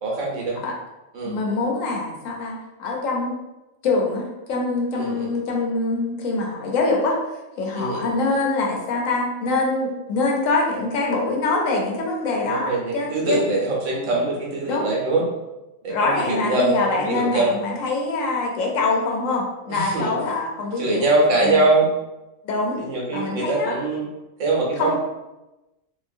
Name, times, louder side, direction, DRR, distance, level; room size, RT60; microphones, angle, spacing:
voice 1, 0.0-0.6 1.1-1.3 4.9-5.3 7.7-8.1 12.5-15.2 15.8-17.5 19.7-20.1 20.8-21.9 22.8-24.1 24.4-25.0, right 2 dB, 70° right, -3 dB, 1.0 m, -23 dB
voice 2, 1.2-3.4 3.8-7.2 7.6-13.4 14.7-14.9 15.9-21.6 22.4-22.8 23.1-23.7 24.8-25.0, left 3 dB, 75° left, 0 dB, 1.0 m, -24 dB
2.8 x 2.3 x 2.5 m, 1.0 s
omnidirectional pair, 1.4 m